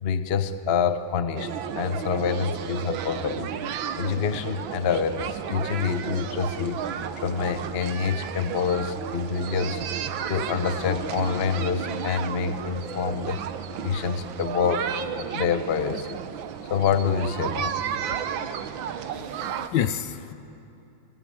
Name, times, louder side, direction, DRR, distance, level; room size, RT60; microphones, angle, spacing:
voice 1, 0.0-3.5 4.0-9.8 10.3-13.4 13.8-14.9 15.2-16.2 16.7-17.8, left 6 dB, 45° left, 10 dB, 0.9 m, -27 dB
sound 1, 1.4-19.7, right 8 dB, 80° right, 1.7 m, -33 dB
voice 2, 19.1-20.3, left 10 dB, 70° left, 13 dB, 1.4 m, -29 dB
29.5 x 19.5 x 8.8 m, 2.7 s
omnidirectional pair, 2.1 m